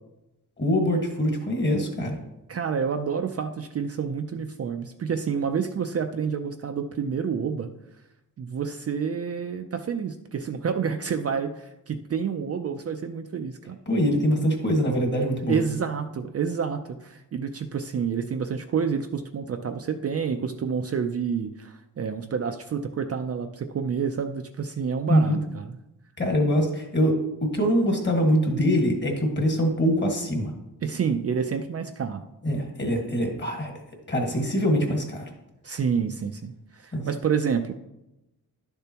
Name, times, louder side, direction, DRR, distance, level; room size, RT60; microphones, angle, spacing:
voice 1, 0.6-2.2 13.9-15.6 25.1-25.4 26.2-30.5 32.4-33.7 34.1-35.3 36.9-37.0, equal, 30° left, 2 dB, 1.7 m, -23 dB
voice 2, 2.5-7.7 8.4-13.8 15.5-25.8 30.8-32.2 35.6-37.7, right 6 dB, 40° right, 5 dB, 0.5 m, -29 dB
11.5 x 6.9 x 2.9 m, 0.92 s
wide cardioid pair, 150°, 38 cm